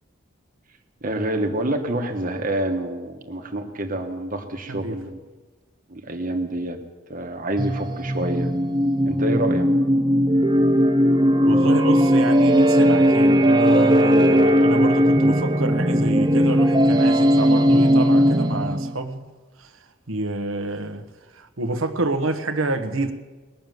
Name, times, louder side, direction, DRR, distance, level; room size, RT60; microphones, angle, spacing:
voice 1, 1.0-5.2 5.9-6.8 7.1-8.5 9.1-9.7, right 1 dB, 40° right, 1.5 m, -27 dB
sound 1, 7.6-19.0, equal, 20° right, 0.7 m, -18 dB
voice 2, 11.4-19.3 19.6-19.7 20.1-21.1 21.3-23.1, right 2 dB, 80° right, 1.2 m, -28 dB
20.5 x 6.8 x 9.3 m
head